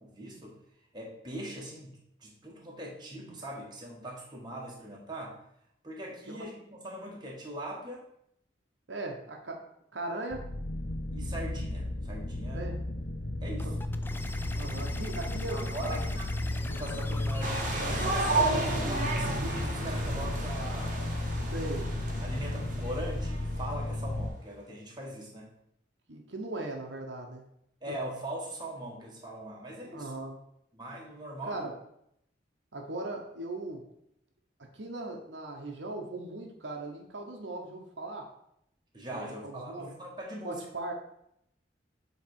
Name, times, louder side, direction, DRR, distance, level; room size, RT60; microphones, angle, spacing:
voice 1, 0.0-0.6 0.9-5.4 5.8-8.0 11.1-12.7 13.4-13.9 15.5-21.0 22.2-25.6 27.8-30.1 30.7-31.7 38.9-40.6, right 1 dB, 25° right, -2 dB, 1.3 m, -41 dB
voice 2, 8.9-9.6 9.9-10.5 12.5-12.8 13.6-13.7 14.5-16.2 21.5-21.9 26.1-27.4 29.9-30.4 31.5-31.7 32.7-33.8 34.7-38.3 39.1-39.9 40.4-40.9, right 2 dB, 85° right, 2 dB, 1.0 m, -38 dB
sound 1, 10.3-24.3, left 1 dB, 75° left, 0.7 m, -34 dB
sound 2, 13.6-18.6, left 2 dB, 10° left, 0.3 m, -43 dB
sound 3, 17.4-23.7, right 2 dB, 45° right, 1.0 m, -32 dB
7.5 x 3.2 x 4.6 m, 0.75 s
head